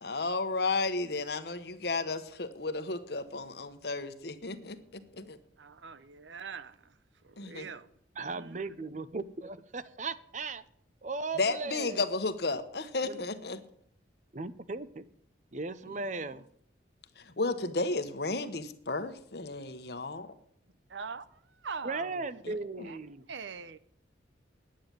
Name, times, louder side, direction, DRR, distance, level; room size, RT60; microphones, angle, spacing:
voice 1, 0.0-5.4 7.4-7.7 11.4-13.6 17.2-20.3 22.4-22.6, left 3 dB, 55° left, 1.1 m, -33 dB
voice 2, 5.6-7.0 7.2-7.9 8.2-8.6 20.9-22.4 22.8-23.0 23.3-23.8, right 5 dB, 75° right, 0.8 m, -43 dB
voice 3, 8.2-10.6 11.0-12.0 13.0-13.2 14.3-15.0 15.5-16.4 21.8-23.3, right 3 dB, 40° right, 0.6 m, -37 dB
10.0 x 8.7 x 9.1 m
head